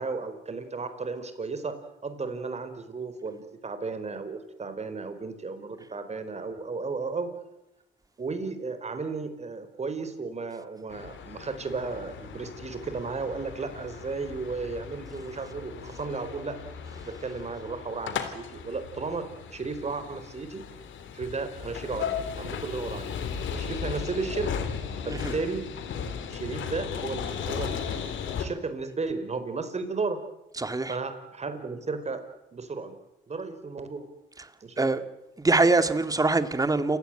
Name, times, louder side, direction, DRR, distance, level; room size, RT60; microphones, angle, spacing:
voice 1, 0.0-7.3 8.2-16.6 17.0-20.6 21.1-23.1 23.5-24.6 25.0-25.6 26.3-28.0 28.4-30.2 30.9-32.2 32.5-33.0 33.3-34.1 34.6-34.8, right 4 dB, 35° right, 4.4 m, -34 dB
sound 1, 10.9-28.4, left 7 dB, 75° left, 3.5 m, -36 dB
voice 2, 30.6-31.0 34.8-35.0 35.4-37.0, right 3 dB, 20° right, 2.2 m, -23 dB
28.5 x 16.5 x 9.1 m
cardioid pair, 90°, 20 cm